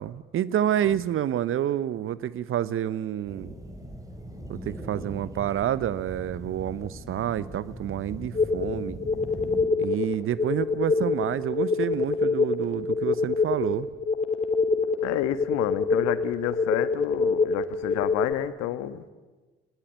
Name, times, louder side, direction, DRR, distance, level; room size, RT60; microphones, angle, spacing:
voice 1, 0.0-3.5 4.5-9.0 9.8-13.9, right 11 dB, 45° right, 18 dB, 1.0 m, -28 dB
sound 1, 3.3-9.7, equal, 10° right, 4.1 m, -40 dB
sound 2, 8.3-18.3, left 4 dB, 25° left, 3.4 m, -25 dB
voice 2, 15.0-19.1, left 13 dB, 55° left, 14 dB, 1.5 m, -29 dB
23.5 x 20.5 x 9.3 m, 1.3 s
figure-of-eight pair, 55°, 30 cm